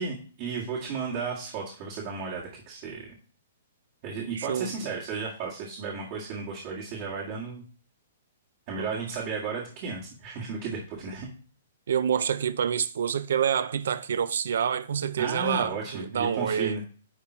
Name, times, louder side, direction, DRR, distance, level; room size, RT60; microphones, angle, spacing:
voice 1, 0.0-3.1 4.0-7.6 8.7-11.3 15.2-16.8, right 4 dB, 30° right, 1.8 m, -34 dB
voice 2, 4.4-4.7 8.8-9.0 11.9-16.8, right 8 dB, 65° right, 0.6 m, -27 dB
10.0 x 3.7 x 4.4 m
hypercardioid pair, 175°, 0 cm